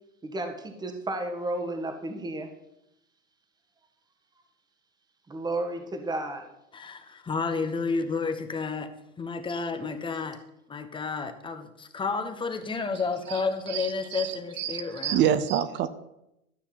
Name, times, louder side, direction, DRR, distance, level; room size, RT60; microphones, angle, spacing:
voice 1, 0.2-2.5 5.3-6.5, right 2 dB, 10° right, 5 dB, 1.6 m, -32 dB
voice 2, 6.7-8.9 9.2-10.4 10.7-15.2, left 4 dB, 10° left, 8 dB, 1.2 m, -31 dB
voice 3, 13.7-15.9, right 10 dB, 25° right, 13 dB, 0.7 m, -28 dB
13.5 x 6.4 x 7.8 m, 0.85 s
hypercardioid pair, 120°, 42 cm